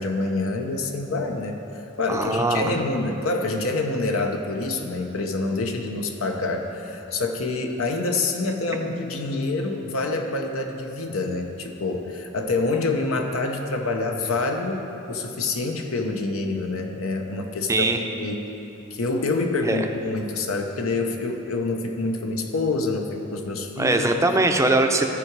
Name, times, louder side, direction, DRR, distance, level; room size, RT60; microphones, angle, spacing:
voice 1, 0.0-1.6 2.0-17.9 18.1-18.5 18.9-24.1, left 3 dB, 75° left, 3 dB, 0.8 m, -26 dB
voice 2, 2.1-2.6 8.7-8.8 17.7-18.0 19.6-19.9 23.8-25.1, right 2 dB, 15° right, 4 dB, 0.5 m, -21 dB
14.5 x 4.8 x 4.7 m, 2.9 s
head